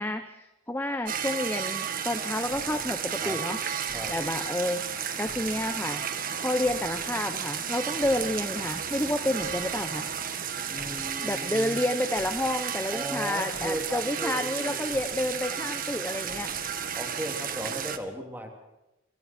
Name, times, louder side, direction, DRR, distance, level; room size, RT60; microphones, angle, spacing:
voice 1, 0.0-3.6 4.1-6.0 6.4-10.1 11.2-16.5, left 1 dB, 10° left, 7 dB, 1.2 m, -30 dB
sound 1, 1.1-18.0, right 7 dB, 45° right, 1.8 m, -33 dB
sound 2, 1.9-17.1, left 1 dB, 40° left, 5.0 m, -52 dB
voice 2, 10.7-11.8 12.9-14.8 16.9-18.5, equal, 10° right, 2 dB, 3.2 m, -36 dB
29.5 x 27.0 x 4.6 m, 0.94 s
head